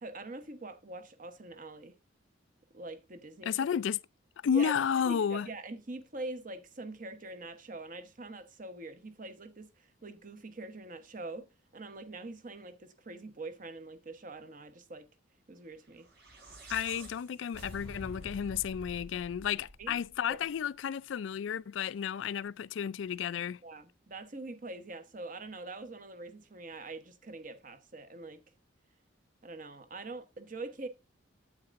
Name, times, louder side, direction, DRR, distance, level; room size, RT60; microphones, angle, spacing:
voice 1, 0.0-1.9 2.7-3.6 4.5-4.7 5.0-11.5 11.7-15.1 15.5-16.1 19.8-20.0 20.3-20.4 23.6-28.4 29.4-30.9, right 2 dB, 45° right, 1.0 m, -44 dB
voice 2, 3.4-4.0 4.4-5.5 16.7-23.6, left 7 dB, 75° left, 0.3 m, -32 dB
sound 1, 16.0-20.4, equal, 60° right, 4.4 m, -48 dB
8.7 x 8.6 x 2.5 m
head